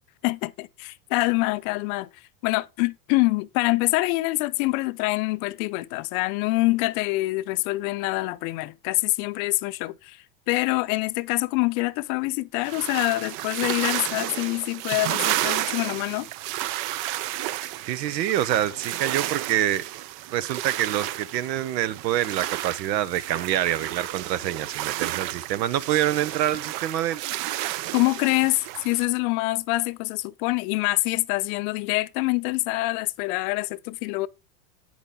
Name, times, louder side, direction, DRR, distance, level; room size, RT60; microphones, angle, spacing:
voice 1, 0.2-2.1 2.4-16.3 27.9-34.3, left 22 dB, 60° left, 0.6 m, -25 dB
sound 1, 12.6-29.1, right 14 dB, 50° right, 0.6 m, -32 dB
voice 2, 17.9-19.8 20.3-27.2, right 12 dB, 85° right, 0.9 m, -26 dB
8.7 x 6.1 x 3.6 m
supercardioid pair, 120°, 49 cm